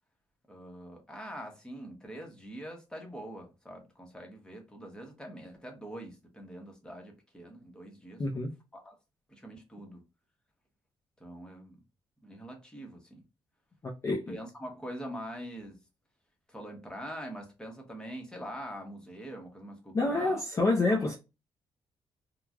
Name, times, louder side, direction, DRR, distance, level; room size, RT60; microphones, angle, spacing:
voice 1, 0.4-8.4 8.7-8.9 9.3-10.0 11.2-11.8 12.2-13.2 14.1-15.8 16.5-20.4 20.9-21.1, equal, 10° left, 1.0 m, -44 dB
voice 2, 8.2-8.5 13.8-14.4 19.9-21.2, left 2 dB, 30° left, 0.5 m, -28 dB
3.2 x 2.3 x 2.3 m
cardioid pair, 130°, 9 cm